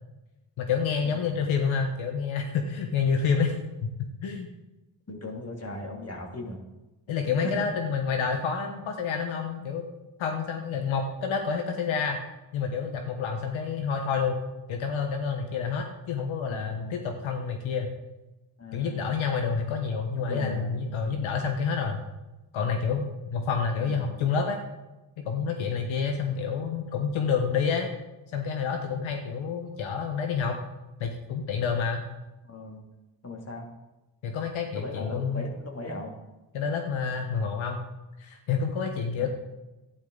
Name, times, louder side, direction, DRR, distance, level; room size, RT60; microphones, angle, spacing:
voice 1, 0.6-3.5 3.8-3.9 4.2-4.5 7.1-9.8 10.2-12.2 12.5-14.4 14.7-17.9 18.7-22.0 22.5-24.6 25.2-27.9 28.3-30.6 31.0-32.0 34.2-35.4 36.5-37.8 38.2-39.3, left 6 dB, 80° left, 4 dB, 1.2 m, -28 dB
voice 2, 5.1-6.6 7.4-7.5 16.5-17.0 18.6-19.0 20.1-20.7 23.8-24.1 32.4-32.8 33.2-33.7 34.7-36.1 39.2-39.3, left 2 dB, 30° left, 1 dB, 2.8 m, -38 dB
12.5 x 10.0 x 3.9 m, 1.0 s
supercardioid pair, 55°, 48 cm